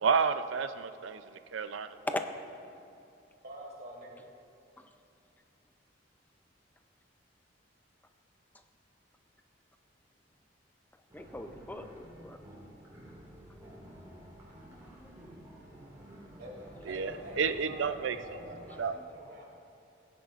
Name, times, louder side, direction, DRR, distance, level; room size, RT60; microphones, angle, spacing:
voice 1, 0.0-2.0 16.9-18.4 18.8-18.9, right 5 dB, 80° right, 11 dB, 0.5 m, -31 dB
voice 2, 3.4-4.3 16.4-19.4, equal, 55° right, -3 dB, 2.6 m, -47 dB
voice 3, 11.1-12.4 14.6-15.2 18.9-19.0, left 1 dB, 10° left, 7 dB, 0.5 m, -41 dB
sound 1, 11.1-18.8, right 1 dB, 15° right, 2.1 m, -51 dB
18.5 x 9.7 x 2.5 m, 2.7 s
head